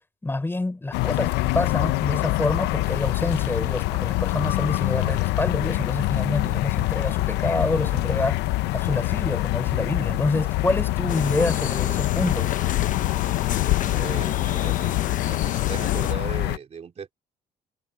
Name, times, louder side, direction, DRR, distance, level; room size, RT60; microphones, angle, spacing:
voice 1, 0.2-12.5, left 2 dB, 15° left, 4.2 m, -27 dB
sound 1, 0.9-16.6, left 19 dB, 90° left, 0.7 m, -25 dB
sound 2, 11.1-16.1, left 10 dB, 50° left, 1.1 m, -31 dB
voice 2, 13.9-14.9 15.2-17.1, right 6 dB, 40° right, 3.1 m, -37 dB
cardioid pair, 110°, 17 cm